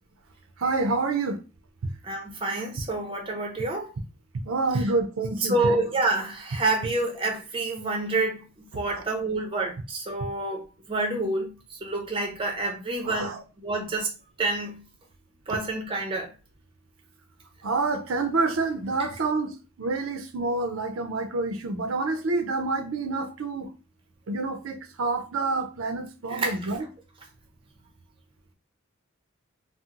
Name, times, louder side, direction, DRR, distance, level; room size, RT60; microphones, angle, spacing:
voice 1, 0.6-1.4 4.5-5.8 8.9-9.0 13.0-13.4 17.6-23.7 24.3-26.9, right 3 dB, 70° right, 0.5 m, -28 dB
voice 2, 2.0-3.9 4.7-4.8 5.4-14.1 14.4-14.8 15.5-16.3 26.3-26.7, right 2 dB, 25° right, 0.6 m, -28 dB
2.8 x 2.0 x 3.6 m
head